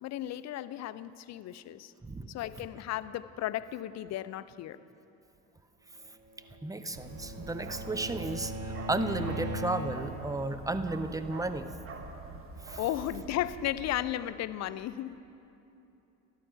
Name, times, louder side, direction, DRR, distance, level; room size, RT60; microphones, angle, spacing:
voice 1, 0.0-1.9 2.3-4.8 12.8-15.2, left 13 dB, 50° left, 15 dB, 0.5 m, -35 dB
Bowed string instrument, 6.3-10.2, equal, 60° right, 2.2 m, -40 dB
voice 2, 6.6-11.7 12.7-12.8, right 2 dB, 10° right, 10 dB, 0.6 m, -33 dB
Bark, 6.9-14.0, right 4 dB, 40° right, 1.3 m, -44 dB
13.0 x 11.5 x 4.6 m, 2.9 s
supercardioid pair, 75°, 34 cm